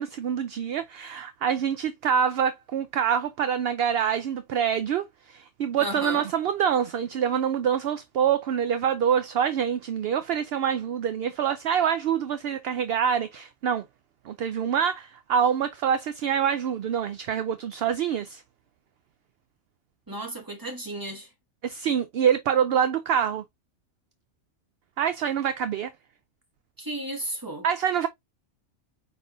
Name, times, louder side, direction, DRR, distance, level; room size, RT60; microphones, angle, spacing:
voice 1, 0.0-13.8 14.3-18.4 21.6-23.4 25.0-25.9 27.6-28.1, right 8 dB, 65° right, 0.6 m, -26 dB
voice 2, 5.8-6.2 20.1-21.3 26.8-27.6, right 1 dB, 15° right, 1.7 m, -34 dB
5.2 x 4.1 x 2.5 m
omnidirectional pair, 1.4 m